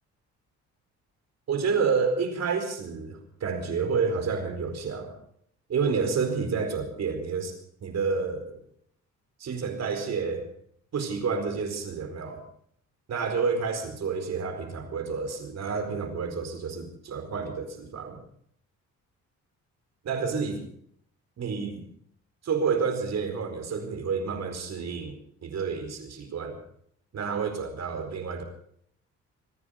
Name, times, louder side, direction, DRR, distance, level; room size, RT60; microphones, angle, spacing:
voice 1, 1.5-5.1 5.7-7.5 7.8-8.6 9.4-10.5 10.9-12.4 13.1-18.2 20.0-20.6 21.4-21.8 22.4-25.1 25.4-26.6 27.1-28.4, right 5 dB, 60° right, 7 dB, 4.6 m, -29 dB
26.5 x 10.0 x 5.3 m, 0.66 s
cardioid pair, 90°, 30 cm